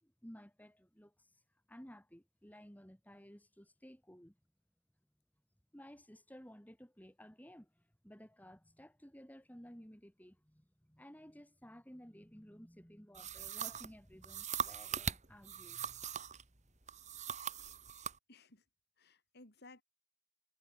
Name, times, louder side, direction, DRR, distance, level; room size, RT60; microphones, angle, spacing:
voice 1, 0.0-1.4 1.7-4.4 5.7-16.2, equal, 10° left, 4.0 m, -56 dB
sound 1, 13.1-16.4 16.9-18.2, right 7 dB, 35° right, 2.6 m, -41 dB
voice 2, 18.3-18.6 19.0-19.8, left 2 dB, 55° left, 4.2 m, -59 dB
head